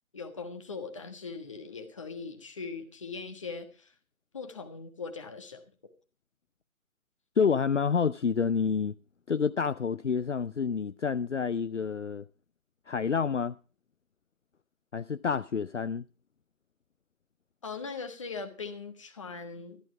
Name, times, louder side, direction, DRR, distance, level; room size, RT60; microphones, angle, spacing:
voice 1, 0.1-3.9 4.3-5.6 17.6-19.8, left 4 dB, 20° left, 1.3 m, -40 dB
voice 2, 7.4-8.9 9.3-12.2 12.9-13.5 14.9-16.0, left 6 dB, 60° left, 0.5 m, -28 dB
13.5 x 12.0 x 4.9 m
figure-of-eight pair, 155°, 42 cm